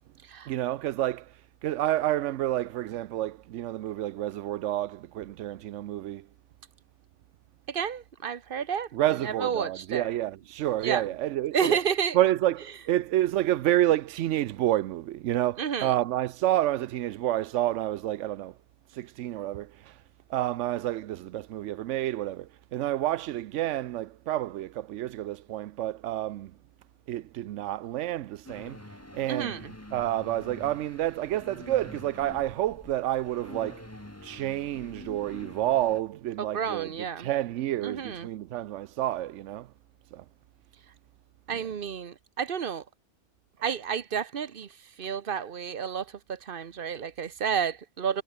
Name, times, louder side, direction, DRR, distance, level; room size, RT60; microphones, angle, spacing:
voice 1, 0.5-6.3 8.9-11.8 12.1-18.6 18.9-20.0 20.3-26.5 27.1-29.6 29.9-33.8 34.2-39.7 40.1-40.2, right 13 dB, 85° right, 0.9 m, -29 dB
voice 2, 7.7-8.9 9.2-10.1 10.8-11.1 11.5-12.2 15.6-15.9 29.3-29.7 36.4-37.3 37.8-38.3 41.5-42.8 43.6-44.7 45.0-48.2, right 7 dB, 50° right, 1.1 m, -30 dB
sound 1, 28.4-36.0, left 1 dB, 10° left, 2.0 m, -46 dB
omnidirectional pair, 1.2 m